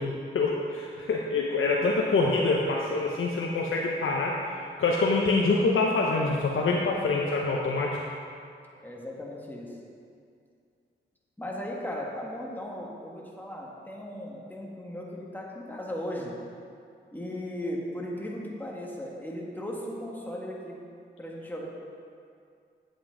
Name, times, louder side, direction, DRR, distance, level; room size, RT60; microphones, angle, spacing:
voice 1, 0.0-4.3 4.8-7.9, left 3 dB, 75° left, -2 dB, 0.8 m, -25 dB
voice 2, 8.8-9.7 11.4-16.3 17.1-20.8 21.2-21.7, left 1 dB, 10° left, -3 dB, 1.7 m, -37 dB
8.0 x 7.9 x 3.8 m, 2.4 s
cardioid pair, 45°, 21 cm